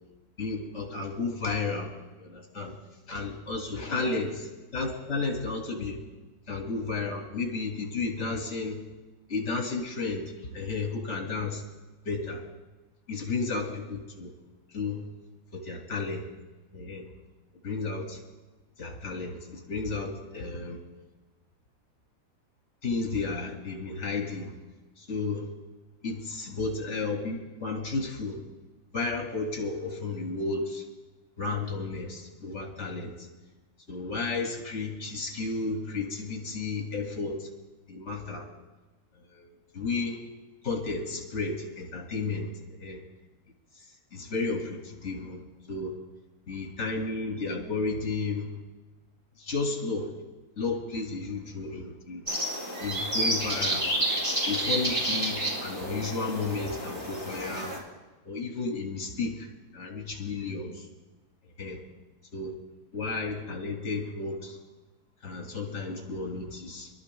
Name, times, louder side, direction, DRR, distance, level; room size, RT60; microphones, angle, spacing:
voice 1, 0.4-2.8 3.1-6.0 6.5-8.8 9.3-11.6 12.0-12.4 13.1-14.3 14.7-15.0 15.5-16.3 16.7-17.1 17.6-18.2 18.8-20.8 22.8-24.5 25.0-25.5 26.0-28.4 28.9-30.8 31.4-33.3 33.9-37.5 37.9-38.5 39.2-39.5 39.7-40.2 40.6-42.5 42.8-43.0 43.8-45.4 45.7-45.9 46.5-48.5 49.4-50.1 50.6-52.3 52.8-53.9 54.4-57.7 58.2-59.5 59.7-60.9 61.6-61.8 62.3-62.6 62.9-64.6 65.2-66.9, left 3 dB, 45° left, 2 dB, 2.7 m, -33 dB
sound 1, 52.3-57.8, right 1 dB, 20° right, 5.7 m, -30 dB
27.5 x 12.5 x 2.3 m, 1.1 s
omnidirectional pair, 1.7 m